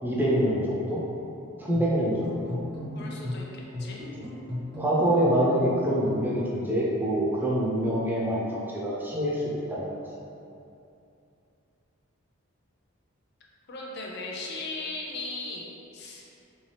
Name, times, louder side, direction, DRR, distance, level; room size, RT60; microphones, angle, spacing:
voice 1, 0.0-1.0 1.6-2.6 4.1-4.3 4.8-9.9, equal, 10° right, -5 dB, 0.5 m, -26 dB
sound 1, 1.7-5.6, left 1 dB, 40° right, 1.1 m, -36 dB
voice 2, 2.9-3.5 3.8-4.0 13.7-15.7 15.9-16.3, left 3 dB, 50° left, -2 dB, 0.5 m, -37 dB
3.6 x 2.7 x 3.2 m, 2.7 s
head